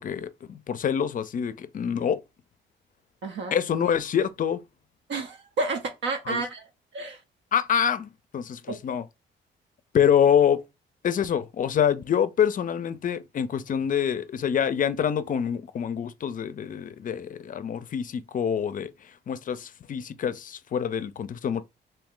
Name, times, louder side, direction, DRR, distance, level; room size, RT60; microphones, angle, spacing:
voice 1, 0.0-2.2 3.5-4.6 6.3-6.4 7.5-9.0 9.9-10.6 11.0-18.9 19.3-21.6, left 8 dB, 45° left, 0.4 m, -26 dB
voice 2, 3.2-3.6 5.1-6.6 6.9-7.2 8.7-8.8, right 3 dB, 70° right, 0.7 m, -30 dB
3.1 x 2.7 x 3.6 m
cardioid pair, 90°, 20 cm